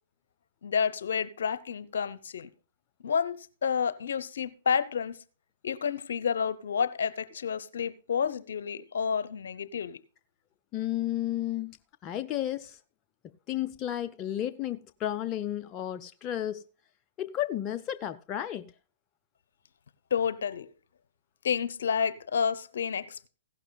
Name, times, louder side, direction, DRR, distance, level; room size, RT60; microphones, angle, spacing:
voice 1, 0.6-2.5 3.0-3.4 3.6-5.2 5.6-10.0 20.1-20.7 21.4-23.3, left 7 dB, 75° left, 0.8 m, -30 dB
voice 2, 10.7-11.8 12.0-12.8 13.5-16.6 17.2-18.7, left 12 dB, 30° left, 0.5 m, -32 dB
16.0 x 11.5 x 2.3 m
hypercardioid pair, 125°, 0 cm